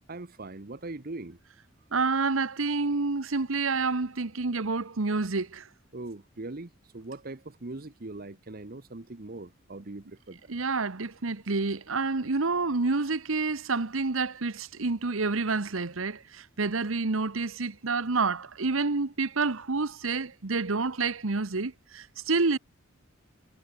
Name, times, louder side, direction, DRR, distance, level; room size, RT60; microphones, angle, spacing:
voice 1, 0.1-1.4 5.9-10.4, right 2 dB, 45° right, 1.1 m, -41 dB
voice 2, 1.9-5.6 10.5-22.6, right 3 dB, 80° right, 1.1 m, -28 dB
head